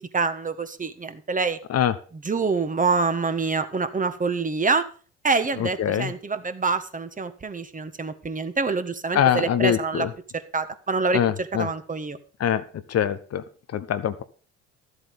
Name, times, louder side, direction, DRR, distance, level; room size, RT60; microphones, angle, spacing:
voice 1, 0.1-1.6 2.2-4.8 5.2-10.0 10.3-12.2, right 4 dB, 25° right, 10 dB, 1.5 m, -26 dB
voice 2, 5.6-6.1 9.1-10.1 11.1-11.7 12.4-12.6 12.9-13.4 13.7-14.2, left 9 dB, 45° left, 12 dB, 1.1 m, -23 dB
13.0 x 8.2 x 5.3 m, 0.39 s
hypercardioid pair, 55°, 34 cm